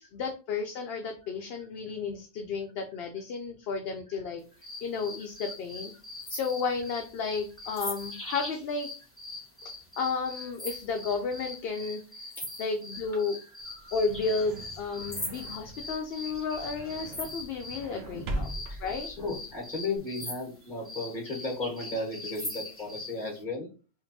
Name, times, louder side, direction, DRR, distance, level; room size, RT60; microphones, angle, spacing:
voice 1, 0.0-4.4 4.8-5.9 6.3-8.9 10.0-12.0 12.6-13.4 13.9-18.5 18.8-19.1, left 4 dB, 65° left, 4 dB, 0.8 m, -32 dB
sound 1, 4.6-17.9 18.4-23.2, left 1 dB, 15° left, 0.9 m, -41 dB
voice 2, 13.1-14.0 14.8-15.1 18.1-18.4 18.7-23.7, left 2 dB, 45° left, -1 dB, 1.6 m, -36 dB
sound 2, 13.6-20.0, right 1 dB, 65° right, 0.9 m, -41 dB
5.1 x 2.6 x 2.6 m, 0.34 s
omnidirectional pair, 1.2 m